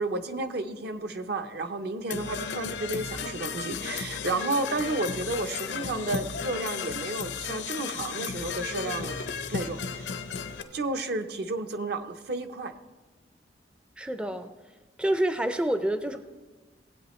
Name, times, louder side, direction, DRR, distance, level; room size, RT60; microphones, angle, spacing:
voice 1, 0.0-9.2 9.5-10.1 10.7-12.7, right 2 dB, 65° right, 8 dB, 0.7 m, -32 dB
Percussion / Brass instrument, 2.1-10.6, left 6 dB, 70° left, 0.6 m, -34 dB
sound 1, 2.8-6.5 7.3-7.4 8.3-10.8, right 1 dB, 85° right, 2.2 m, -50 dB
voice 2, 14.0-14.5 15.0-16.2, right 1 dB, 5° right, 9 dB, 0.4 m, -27 dB
18.0 x 8.2 x 3.1 m, 1.3 s
head